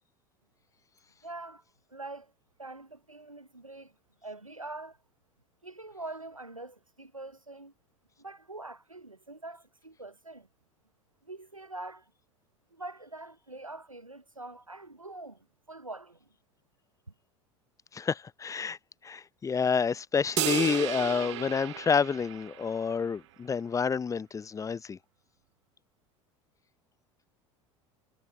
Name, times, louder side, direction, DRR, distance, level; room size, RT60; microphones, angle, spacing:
voice 1, 1.2-1.6 1.9-2.3 2.6-3.9 4.2-5.0 5.6-7.7 8.2-10.5 11.2-12.1 12.7-16.3, right 2 dB, 90° right, 0.9 m, -44 dB
voice 2, 17.9-18.8 19.0-25.0, left 6 dB, 20° left, 0.7 m, -29 dB
sound 1, 20.4-22.9, right 16 dB, 60° right, 0.4 m, -34 dB
figure-of-eight pair, 70°, 17 cm